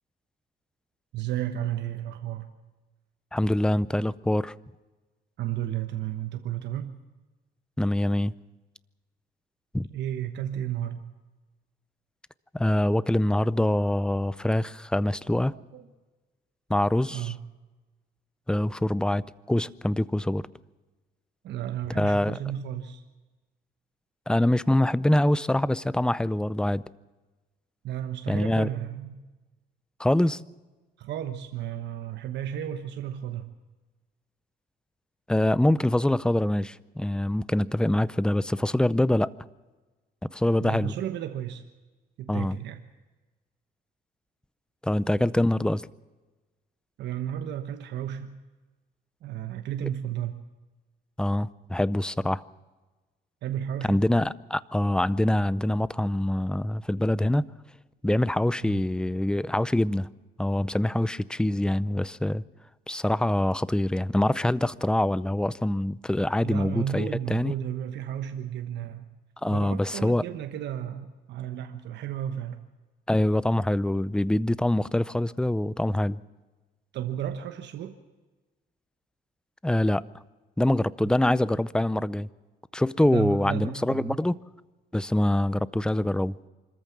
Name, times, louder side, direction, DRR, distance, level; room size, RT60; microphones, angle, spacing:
voice 1, 1.1-2.5 5.4-7.0 9.9-11.0 15.5-15.8 17.1-17.4 21.4-23.0 27.8-29.2 31.0-33.5 40.6-41.6 42.2-42.8 47.0-48.4 49.2-50.3 53.4-54.0 58.6-58.8 66.4-69.0 69.5-72.6 76.9-78.0 81.0-81.1 83.0-84.2, right 10 dB, 75° right, 7 dB, 1.2 m, -33 dB
voice 2, 3.3-4.5 7.8-8.3 9.7-9.9 12.5-15.5 16.7-17.3 18.5-20.4 22.0-22.4 24.3-26.8 28.3-28.7 30.0-30.4 35.3-39.3 40.3-40.9 42.3-42.6 44.8-45.9 51.2-52.4 53.8-57.5 58.0-60.1 60.4-62.4 62.9-67.5 69.4-70.2 73.1-76.2 79.6-80.0 80.6-82.3 82.7-84.3 84.9-86.3, left 1 dB, 5° left, 19 dB, 0.6 m, -24 dB
25.5 x 14.0 x 7.3 m, 1.2 s
cardioid pair, 105°, 18 cm